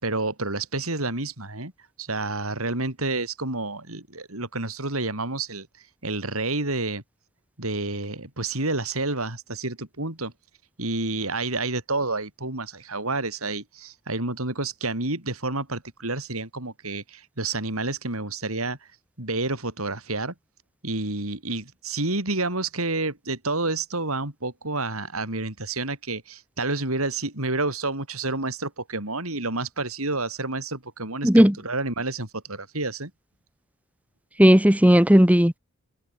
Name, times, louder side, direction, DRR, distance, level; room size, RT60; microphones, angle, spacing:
voice 1, 0.0-1.7 2.0-5.7 6.0-7.0 7.6-10.3 10.8-18.8 19.2-20.3 20.8-33.1, right 2 dB, 75° right, 5.7 m, -29 dB
voice 2, 31.2-31.5 34.4-35.6, equal, 5° right, 1.5 m, -15 dB
head